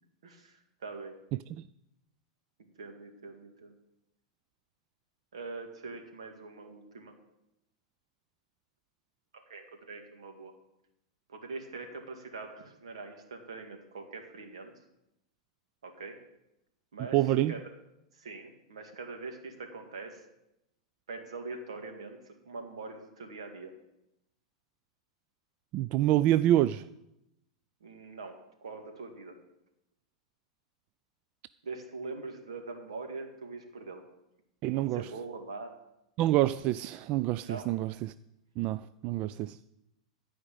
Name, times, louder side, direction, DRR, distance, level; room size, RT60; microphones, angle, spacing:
voice 1, 0.2-0.6 0.8-1.2 2.8-3.7 5.3-7.1 9.5-10.5 11.3-14.7 15.8-16.2 16.9-17.2 17.5-17.6 18.2-20.2 21.1-23.7 27.8-29.4 31.6-34.0 34.7-35.8 37.5-37.7, right 3 dB, 85° right, 4 dB, 2.3 m, -43 dB
voice 2, 1.3-1.6 17.1-17.5 25.7-26.9 34.6-35.1 36.2-38.1 38.6-39.6, right 14 dB, 45° right, 15 dB, 0.4 m, -27 dB
14.5 x 5.1 x 8.4 m, 0.87 s
hypercardioid pair, 105°, 3 cm